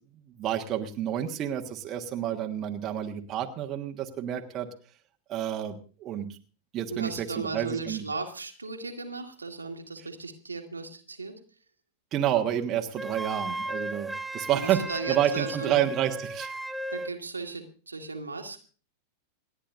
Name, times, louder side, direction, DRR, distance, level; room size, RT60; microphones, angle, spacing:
voice 1, 0.4-4.7 5.3-6.4 6.7-7.3 7.5-8.0 12.1-14.8 15.1-16.5, right 11 dB, 30° right, 3 dB, 1.5 m, -29 dB
voice 2, 6.9-11.3 14.5-15.8 16.9-18.6, right 3 dB, 80° right, 3 dB, 1.9 m, -36 dB
Wind instrument woodwind instrument, 13.0-17.2, right 1 dB, 5° right, 0.6 m, -35 dB
28.5 x 10.0 x 2.6 m, 0.39 s
figure-of-eight pair, 90°, 0 cm